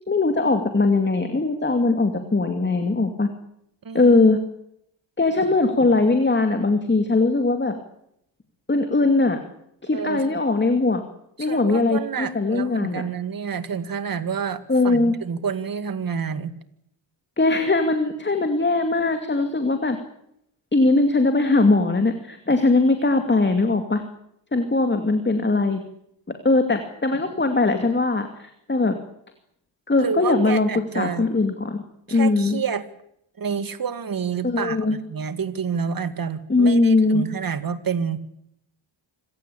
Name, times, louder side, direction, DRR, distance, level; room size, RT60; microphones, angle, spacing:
voice 1, 0.1-3.3 3.9-4.4 5.2-7.7 8.7-9.4 9.8-11.0 11.4-13.0 14.7-15.1 17.4-20.0 20.7-24.0 24.5-25.8 26.3-29.0 29.9-30.7 30.9-31.8 32.1-32.6 34.4-35.0 36.5-37.3, left 3 dB, 25° left, 7 dB, 2.5 m, -20 dB
voice 2, 3.8-4.2 9.9-10.4 11.4-16.5 30.0-31.3 32.1-32.9 33.4-38.2, right 6 dB, 45° right, 12 dB, 2.0 m, -29 dB
26.0 x 16.5 x 8.6 m, 0.75 s
cardioid pair, 90°, 46 cm